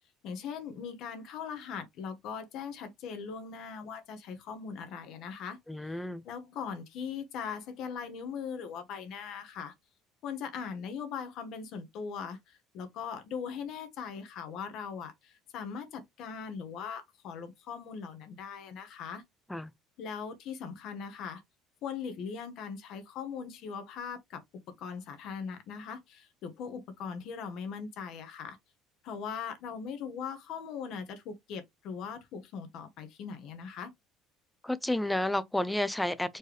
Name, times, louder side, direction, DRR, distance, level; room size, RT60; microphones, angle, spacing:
voice 1, 0.2-5.6 5.8-6.0 6.2-9.7 10.2-19.2 20.0-21.4 21.8-24.4 24.8-28.6 29.0-33.9, left 6 dB, 55° left, 1.1 m, -40 dB
voice 2, 5.7-6.2 19.5-19.7 34.6-36.4, left 1 dB, 5° left, 0.4 m, -31 dB
4.4 x 3.2 x 3.3 m
cardioid pair, 150°, 0 cm